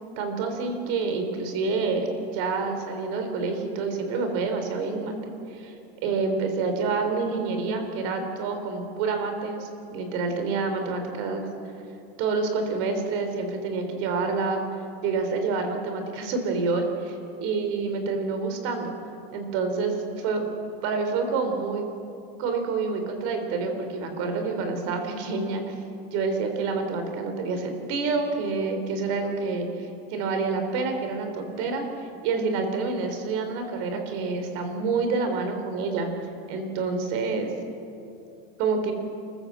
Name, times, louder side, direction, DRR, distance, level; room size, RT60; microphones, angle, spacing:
voice 1, 0.2-5.2 5.5-5.7 6.0-11.5 12.2-14.6 15.0-18.9 19.3-20.4 20.8-21.9 22.4-25.7 26.1-31.8 32.2-36.1 36.5-37.5 38.6-38.9, right 4 dB, 50° right, 6 dB, 4.0 m, -28 dB
28.0 x 15.0 x 7.6 m, 2.7 s
supercardioid pair, 150°, 29 cm